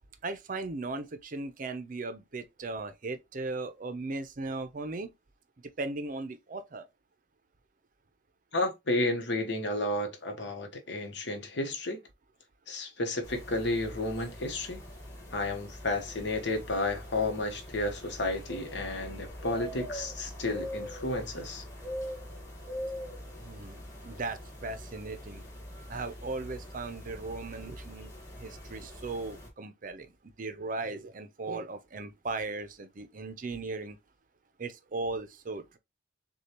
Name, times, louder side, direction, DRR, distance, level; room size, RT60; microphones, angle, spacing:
voice 1, 0.2-5.1 5.8-6.9 23.4-25.4 25.9-28.1 28.4-30.1 30.4-34.0 34.6-35.8, right 3 dB, 45° right, 0.6 m, -37 dB
voice 2, 8.5-12.0 12.7-14.8 15.3-21.6, left 2 dB, 65° left, 1.1 m, -32 dB
sound 1, 13.2-29.5, equal, 20° left, 1.6 m, -43 dB
6.4 x 2.3 x 2.9 m
head